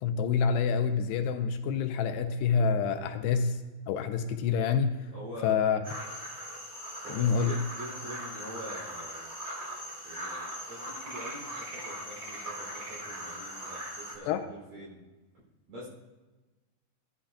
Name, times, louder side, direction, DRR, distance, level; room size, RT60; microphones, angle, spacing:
voice 1, 0.0-3.6 3.9-5.0 5.4-5.8 7.1-7.5 14.3-14.4, left 6 dB, 85° left, 7 dB, 2.7 m, -27 dB
voice 2, 5.1-5.6 7.0-9.3 10.0-15.0 15.7-15.9, right 1 dB, 55° right, -7 dB, 4.7 m, -45 dB
sound 1, 5.8-14.1, equal, 25° right, 2.0 m, -40 dB
16.5 x 11.5 x 2.3 m, 1.2 s
omnidirectional pair, 4.9 m